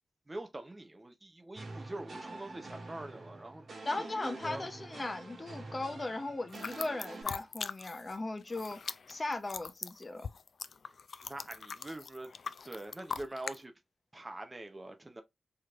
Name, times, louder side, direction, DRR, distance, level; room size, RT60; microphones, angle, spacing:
voice 1, 0.3-3.7 4.0-4.7 10.8-10.9 11.2-12.3 12.6-13.7 14.1-15.2, right 1 dB, 20° right, 0.7 m, -44 dB
sound 1, 1.5-7.2, right 2 dB, 55° right, 1.9 m, -47 dB
voice 2, 3.8-8.8 9.1-10.3, left 2 dB, 25° left, 0.7 m, -37 dB
sound 2, 6.5-8.2 8.4-13.6, left 5 dB, 60° left, 0.3 m, -41 dB
4.8 x 3.0 x 2.4 m
wide cardioid pair, 175°, 0 cm